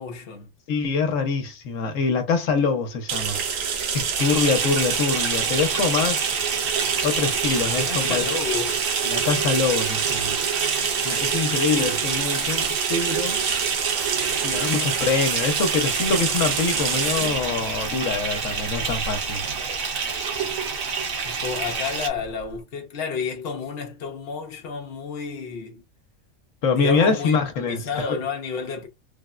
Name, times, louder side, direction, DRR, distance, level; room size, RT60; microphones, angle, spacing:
voice 1, 0.0-0.5 7.6-8.8 21.2-25.8 26.7-28.9, left 5 dB, 55° left, 0.9 m, -31 dB
voice 2, 0.7-3.4 3.9-6.3 7.0-8.2 9.0-10.5 11.0-13.4 14.4-19.5 26.6-27.8, left 5 dB, 80° left, 1.1 m, -24 dB
sound 1, 3.1-22.5, right 7 dB, 90° right, 1.1 m, -27 dB
Bathtub (filling or washing) / Fill (with liquid), 4.2-22.1, right 5 dB, 50° right, 0.9 m, -29 dB
3.4 x 2.1 x 2.3 m
omnidirectional pair, 1.3 m